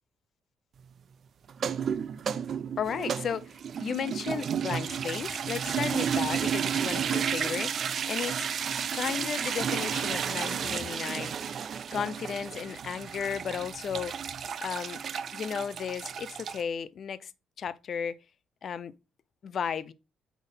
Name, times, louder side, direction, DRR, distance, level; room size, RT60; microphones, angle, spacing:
sound 1, 1.5-16.6, right 7 dB, 50° right, 0.4 m, -32 dB
voice 1, 2.8-7.7 8.1-8.5 8.9-11.3 11.9-14.1 14.6-15.0 15.3-17.3 17.6-18.2 18.6-18.9 19.4-19.9, left 7 dB, 50° left, 0.5 m, -34 dB
8.2 x 3.5 x 3.9 m
cardioid pair, 125°, 0 cm